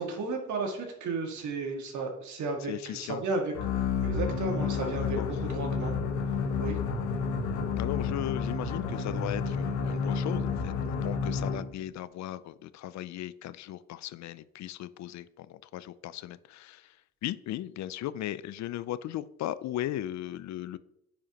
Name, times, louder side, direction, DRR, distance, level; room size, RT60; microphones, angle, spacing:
voice 1, 0.0-5.2 5.5-5.9 6.6-6.8, right 3 dB, 70° right, 2 dB, 1.9 m, -33 dB
voice 2, 2.7-3.2 5.2-5.3 7.8-16.9 17.2-20.8, left 13 dB, 65° left, 17 dB, 0.5 m, -37 dB
sound 1, 3.5-11.8, left 5 dB, 90° left, 1.2 m, -30 dB
9.3 x 4.8 x 2.9 m, 0.80 s
cardioid pair, 90°, 30 cm